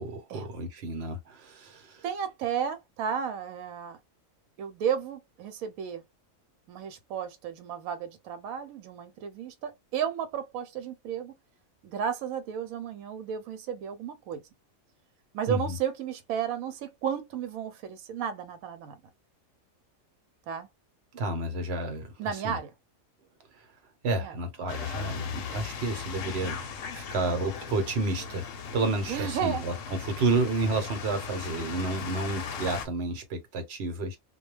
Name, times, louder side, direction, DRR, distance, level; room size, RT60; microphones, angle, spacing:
voice 1, 0.0-2.0 15.5-15.8 21.1-22.1 22.4-22.6 24.0-26.6 26.9-28.5 28.7-34.2, right 2 dB, 55° right, 1.0 m, -30 dB
voice 2, 2.0-4.0 4.6-6.0 6.7-11.3 11.8-14.4 15.3-19.0 20.5-20.7 22.2-22.7 24.1-24.4 29.1-29.6, right 8 dB, 80° right, 1.0 m, -33 dB
sound 1, 24.7-32.9, left 6 dB, 70° left, 0.9 m, -38 dB
2.3 x 2.2 x 3.1 m
omnidirectional pair, 1.5 m